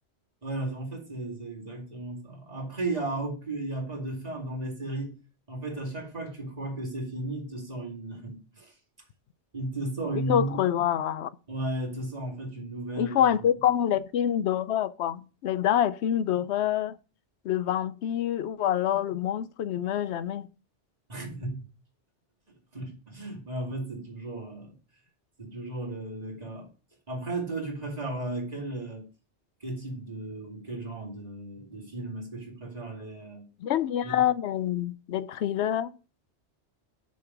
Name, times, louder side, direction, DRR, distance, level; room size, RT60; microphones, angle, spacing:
voice 1, 0.4-5.2 5.5-8.7 9.5-10.6 11.5-13.3 21.1-21.6 22.7-24.8 25.4-26.7 27.1-29.1 29.6-33.5 34.0-34.2, right 2 dB, 35° right, 2.3 m, -35 dB
voice 2, 10.3-11.3 13.0-17.0 17.4-20.5 33.6-36.0, left 10 dB, 70° left, 0.9 m, -26 dB
6.7 x 5.4 x 5.9 m
omnidirectional pair, 1.2 m